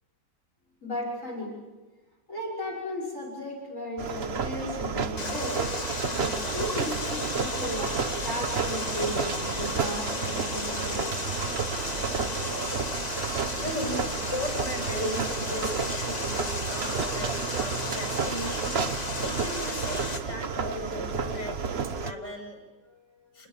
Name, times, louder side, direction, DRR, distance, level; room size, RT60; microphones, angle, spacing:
voice 1, 0.8-1.6 2.3-5.6 6.2-11.2, left 1 dB, 45° left, 0 dB, 6.2 m, -35 dB
sound 1, 4.0-22.1, right 5 dB, 40° right, 1.1 m, -31 dB
Water, 5.2-20.2, left 2 dB, 25° left, 1.7 m, -34 dB
voice 2, 13.5-18.8 19.2-23.5, left 1 dB, 75° left, 3 dB, 6.6 m, -37 dB
27.5 x 20.5 x 7.3 m, 1.2 s
omnidirectional pair, 1.9 m